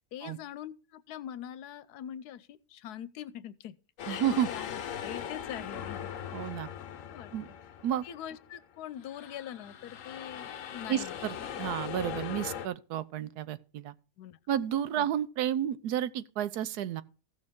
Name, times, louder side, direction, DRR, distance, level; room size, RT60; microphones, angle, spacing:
voice 1, 0.1-3.8 4.0-6.1 7.1-7.6 8.0-11.2 14.2-14.4 15.0-15.1, left 10 dB, 90° left, 1.2 m, -43 dB
sound 1, 4.0-8.6 9.0-12.7, left 9 dB, 65° left, 1.1 m, -40 dB
voice 2, 4.1-4.5 6.3-6.7 7.3-7.5 7.8-8.0 10.9-13.9 14.5-17.0, right 10 dB, 85° right, 1.2 m, -31 dB
15.0 x 6.5 x 3.6 m
omnidirectional pair, 1.6 m